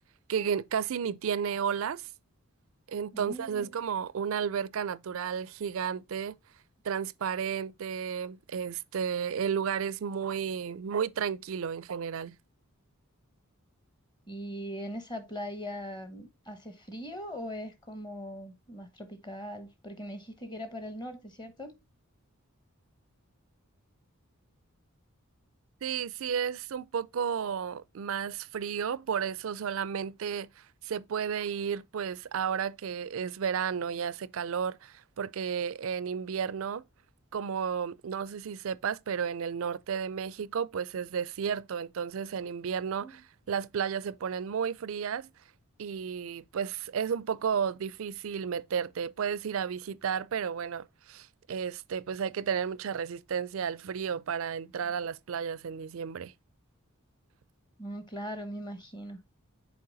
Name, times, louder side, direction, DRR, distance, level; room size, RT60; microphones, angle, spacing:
voice 1, 0.3-2.1 2.9-6.4 6.8-12.4 25.8-30.5 30.8-36.8 37.3-43.2 43.5-45.3 45.8-56.3, right 7 dB, 65° right, 0.4 m, -32 dB
voice 2, 3.1-3.6 14.3-21.7 43.0-43.2 57.8-59.2, equal, 20° left, 1.0 m, -40 dB
6.7 x 4.3 x 3.9 m
head